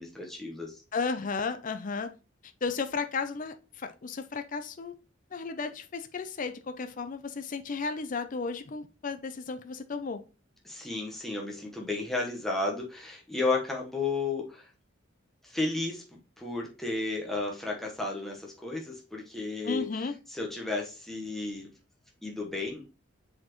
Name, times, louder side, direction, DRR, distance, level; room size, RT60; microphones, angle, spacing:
voice 1, 0.0-0.8 10.6-14.7 15.4-16.0 16.4-19.9 20.3-21.7 22.2-22.8, left 3 dB, ahead, 1.1 m, -33 dB
voice 2, 0.9-2.1 2.6-4.9 5.3-10.2 19.6-20.2, left 4 dB, 45° left, 0.5 m, -34 dB
7.2 x 4.3 x 3.0 m
head